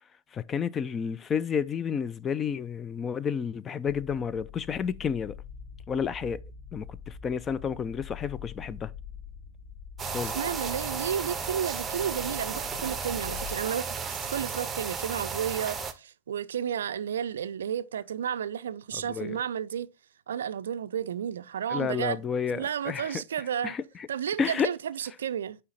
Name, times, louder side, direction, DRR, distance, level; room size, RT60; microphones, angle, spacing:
voice 1, 0.3-5.4 5.9-6.4 6.7-8.9 10.1-10.3 19.1-19.4 21.7-23.2 23.6-24.1 24.4-24.7, left 7 dB, 25° left, 0.4 m, -31 dB
sound 1, 3.8-13.5, left 7 dB, 75° left, 1.2 m, -45 dB
sound 2, 10.0-15.9, right 5 dB, 20° right, 0.7 m, -34 dB
voice 2, 10.2-19.9 20.3-22.2 22.5-23.8 24.1-25.6, right 8 dB, 65° right, 0.4 m, -32 dB
9.4 x 3.3 x 3.8 m
figure-of-eight pair, 90°, 0 cm